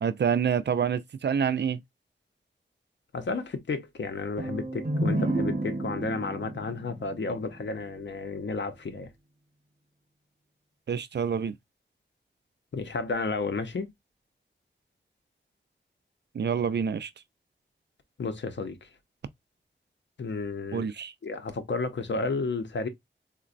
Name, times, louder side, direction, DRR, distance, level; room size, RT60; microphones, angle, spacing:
voice 1, 0.0-1.8 10.9-11.5 16.3-17.1 20.7-21.1, right 7 dB, 60° right, 0.4 m, -27 dB
voice 2, 3.1-9.1 12.7-13.9 18.2-18.9 20.2-20.9 21.2-22.9, left 3 dB, 65° left, 0.7 m, -32 dB
sound 1, 4.4-8.0, right 1 dB, 40° right, 0.9 m, -31 dB
3.9 x 2.2 x 2.4 m
wide cardioid pair, 70°, 20 cm